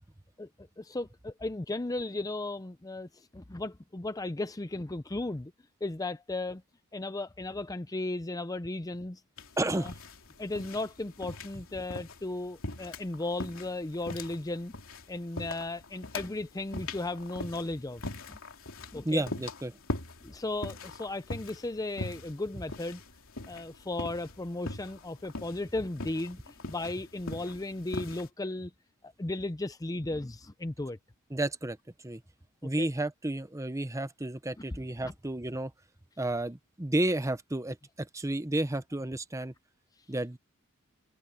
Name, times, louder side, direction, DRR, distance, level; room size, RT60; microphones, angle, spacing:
voice 1, 0.8-5.5 5.8-6.6 6.9-9.2 9.6-9.9 10.4-14.7 15.1-18.0 18.3-18.4 18.9-19.2 20.2-23.0 23.5-28.7 29.0-31.0 32.6-32.9 35.0-35.1, left 2 dB, 15° left, 0.6 m, -35 dB
sound 1, 9.4-28.3, left 2 dB, 65° left, 3.3 m, -42 dB
voice 2, 9.6-9.9 19.0-19.8 31.3-31.8 32.0-32.2 32.6-35.7 36.2-39.5 40.1-40.4, right 1 dB, 15° right, 0.8 m, -31 dB
open air
head